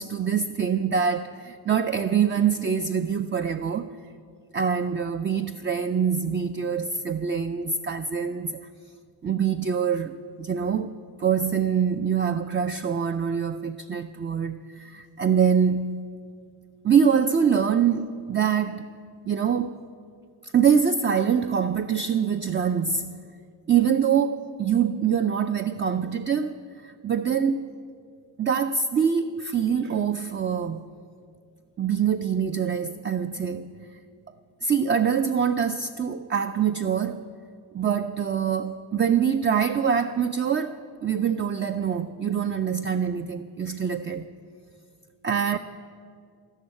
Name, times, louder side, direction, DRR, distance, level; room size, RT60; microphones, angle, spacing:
voice 1, 0.0-3.9 4.5-8.6 9.2-16.1 16.8-18.9 19.3-19.8 20.4-23.2 23.7-27.7 28.4-30.9 31.8-33.7 34.6-37.3 37.7-44.3 45.2-45.6, right 7 dB, 25° right, 0.4 m, -24 dB
14.5 x 6.3 x 9.7 m
cardioid pair, 65°, 47 cm